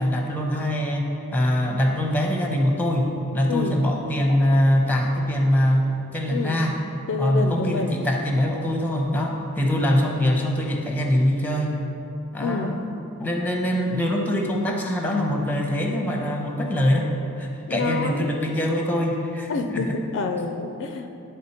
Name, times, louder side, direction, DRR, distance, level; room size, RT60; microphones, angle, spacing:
voice 1, 0.0-6.8 7.2-11.8 12.3-12.8 13.2-17.1 17.4-19.8, left 1 dB, 10° left, 1 dB, 0.7 m, -23 dB
voice 2, 3.5-3.9 6.3-6.7 7.1-8.0 12.4-12.8 17.7-18.3 19.5-21.1, left 3 dB, 55° left, 6 dB, 0.4 m, -28 dB
10.0 x 3.5 x 4.3 m, 2.9 s
head